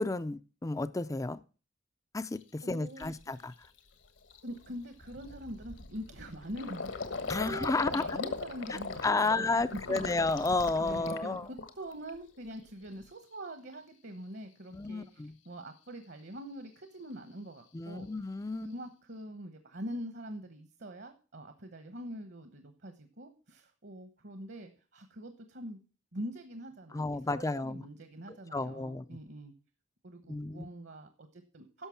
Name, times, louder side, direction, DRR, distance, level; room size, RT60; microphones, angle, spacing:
voice 1, 0.0-1.4 2.1-3.5 7.3-8.0 9.0-11.4 14.7-15.4 17.7-18.7 26.9-27.8 28.3-29.1 30.3-30.7, left 3 dB, 15° left, 15 dB, 0.4 m, -32 dB
Gurgling, 2.4-2.5 3.0-3.2 3.6-12.1 12.4-13.1, left 4 dB, 70° left, 1.3 m, -40 dB
voice 2, 2.6-3.3 4.4-7.0 7.4-10.2 10.8-18.1 18.6-25.8 26.1-29.5 30.0-31.9, equal, 55° right, 8 dB, 1.1 m, -44 dB
11.0 x 6.6 x 5.8 m, 0.36 s
head